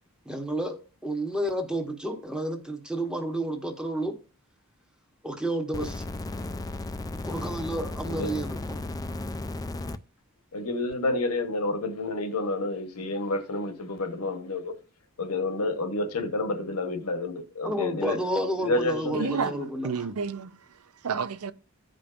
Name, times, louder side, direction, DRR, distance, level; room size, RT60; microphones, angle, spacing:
voice 1, 0.2-4.2 5.2-6.0 7.2-8.8 17.6-20.1, right 1 dB, 5° right, 1.0 m, -31 dB
sound 1, 5.7-10.0 10.9-11.0, left 2 dB, 15° left, 0.4 m, -34 dB
voice 2, 10.5-14.7 15.2-18.2 18.6-19.3, left 2 dB, 80° left, 1.1 m, -29 dB
voice 3, 19.1-21.5, right 5 dB, 75° right, 0.6 m, -31 dB
15.5 x 5.2 x 2.5 m
head